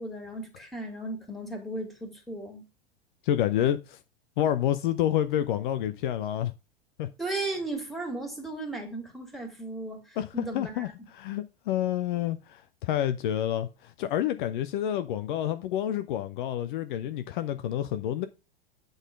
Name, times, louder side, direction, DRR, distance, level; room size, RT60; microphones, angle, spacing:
voice 1, 0.0-2.7 7.2-10.9, right 2 dB, ahead, 2.4 m, -36 dB
voice 2, 3.2-4.0 4.4-6.5 7.0-7.1 10.2-18.3, left 11 dB, 55° left, 0.7 m, -29 dB
8.0 x 4.0 x 5.3 m
figure-of-eight pair, 95°, 30 cm